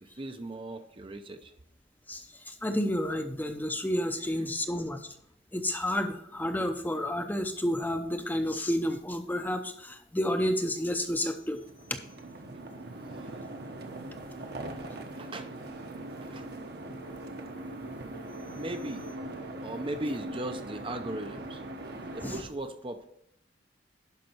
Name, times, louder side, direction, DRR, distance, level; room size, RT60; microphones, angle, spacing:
voice 1, 0.0-1.5 4.3-4.5 13.0-13.4 14.7-15.5 16.0-16.5 18.5-19.1 19.6-21.6 22.1-23.1, right 1 dB, 25° right, 7 dB, 0.6 m, -38 dB
voice 2, 2.1-5.0 5.5-11.6 22.2-22.4, left 1 dB, 10° left, 7 dB, 0.7 m, -30 dB
sound 1, 11.4-22.4, right 1 dB, 55° right, 1.1 m, -41 dB
11.5 x 5.3 x 4.5 m, 0.77 s
head